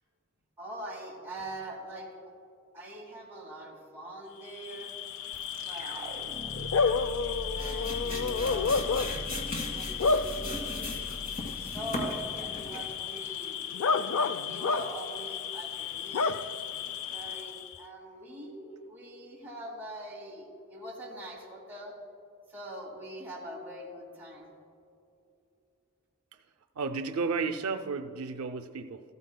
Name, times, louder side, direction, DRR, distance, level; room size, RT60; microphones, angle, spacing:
voice 1, 0.6-2.1 2.7-4.9 5.6-6.9 7.5-9.1 9.5-11.1 11.5-13.6 14.1-16.4 17.1-21.9 22.5-24.5, right 1 dB, 10° right, -4 dB, 2.1 m, -43 dB
Bark / Cricket, 4.5-17.8, left 5 dB, 70° left, 0.4 m, -31 dB
sound 1, 5.3-12.6, right 1 dB, 25° right, 0.9 m, -42 dB
sound 2, 7.4-13.0, left 1 dB, 40° left, 1.8 m, -39 dB
voice 2, 26.8-29.0, right 4 dB, 80° right, 8 dB, 0.5 m, -32 dB
15.0 x 13.5 x 2.2 m, 2.7 s
head